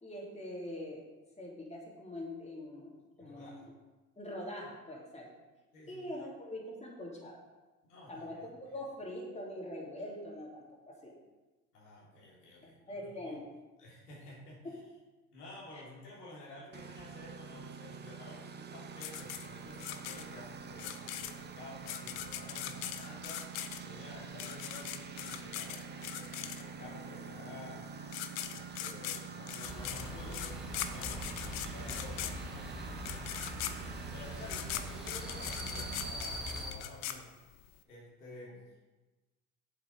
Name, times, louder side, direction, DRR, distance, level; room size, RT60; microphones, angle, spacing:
voice 1, 0.0-1.0 1.4-3.7 4.2-5.3 5.9-7.4 8.1-11.1 12.6-13.4 15.7-15.8, left 1 dB, 15° left, -3 dB, 3.0 m, -43 dB
voice 2, 3.2-3.7 5.7-6.0 7.9-8.3 11.7-13.4 13.8-14.6 15.3-27.9 28.5-33.4 34.1-37.4 37.8-38.6, left 1 dB, 85° left, -5 dB, 3.4 m, -51 dB
Engine, 16.7-36.1, right 6 dB, 25° right, 0.7 m, -46 dB
sound 1, 19.0-26.9 27.8-27.9 28.1-37.8, left 12 dB, 60° left, 0.9 m, -41 dB
sound 2, 29.6-36.7, equal, ahead, 1.7 m, -42 dB
8.3 x 7.3 x 5.3 m, 1.2 s
hypercardioid pair, 75°, 45 cm